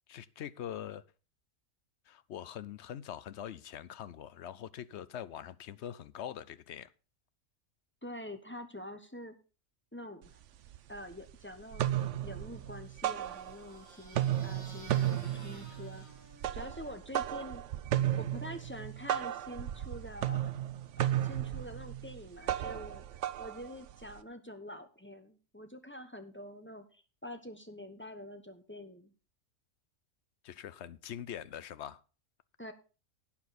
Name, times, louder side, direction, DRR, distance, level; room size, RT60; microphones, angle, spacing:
voice 1, 0.1-1.0 2.1-6.9 30.4-32.0, left 10 dB, 60° left, 17 dB, 0.8 m, -43 dB
voice 2, 8.0-9.4 9.9-10.4 10.9-11.9 12.2-16.1 16.5-17.6 18.2-20.5 21.0-23.0 23.4-29.1 32.6-32.7, left 1 dB, 10° left, 8 dB, 1.0 m, -46 dB
sound 1, 10.2-10.3 10.7-11.3 11.6-13.8 14.1-24.2, right 12 dB, 65° right, 0.9 m, -34 dB
sound 2, 12.6-17.1, right 1 dB, 15° right, 3.4 m, -55 dB
11.5 x 8.7 x 4.1 m, 0.34 s
omnidirectional pair, 1.4 m